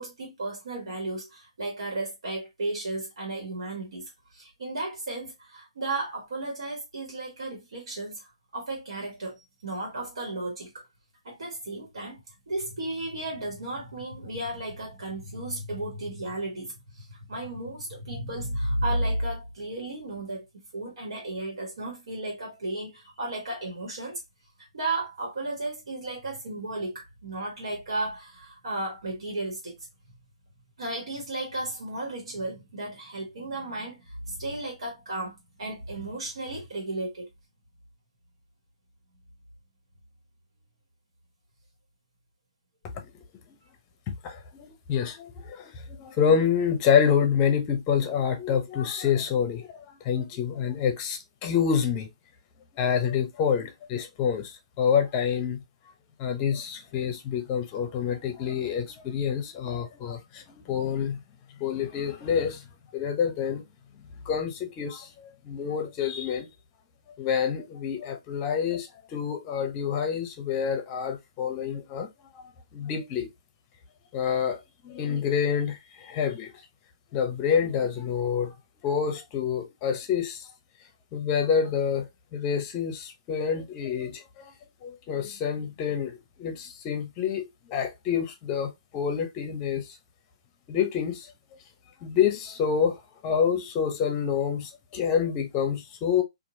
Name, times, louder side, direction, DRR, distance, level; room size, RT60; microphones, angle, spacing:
voice 1, 0.0-10.8 11.2-12.2 12.5-20.4 20.7-24.2 24.7-29.7 30.8-37.3, right 2 dB, 75° right, 1.5 m, -34 dB
voice 2, 44.1-52.1 52.8-55.6 56.2-61.2 61.6-62.6 62.9-63.6 64.3-66.5 67.2-72.1 72.3-72.4 72.7-73.3 74.1-76.5 77.1-78.5 78.8-80.5 81.1-84.5 84.8-89.9 90.7-91.3 92.0-96.2, left 7 dB, 30° left, 0.7 m, -27 dB
2.9 x 2.5 x 2.6 m
hypercardioid pair, 145°, 3 cm